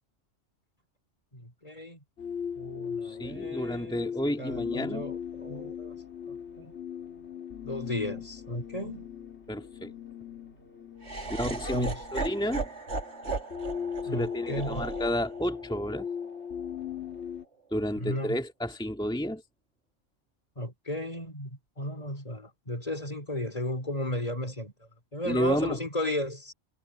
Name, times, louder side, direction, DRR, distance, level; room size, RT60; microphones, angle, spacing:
voice 1, 1.3-2.0 2.6-4.1 4.4-6.0 6.3-6.7 7.6-9.1 11.4-12.0 14.0-14.9 18.0-18.4 20.6-24.7 25.1-26.5, left 1 dB, 30° left, 3.1 m, -34 dB
sound 1, 2.2-17.5, left 7 dB, 60° left, 3.1 m, -39 dB
voice 2, 3.0-5.1 9.5-9.9 11.3-12.7 14.1-16.1 17.7-19.4 25.3-25.8, equal, 5° left, 1.9 m, -31 dB
Laughter, 11.0-17.2, right 3 dB, 60° right, 2.7 m, -37 dB
omnidirectional pair, 1.3 m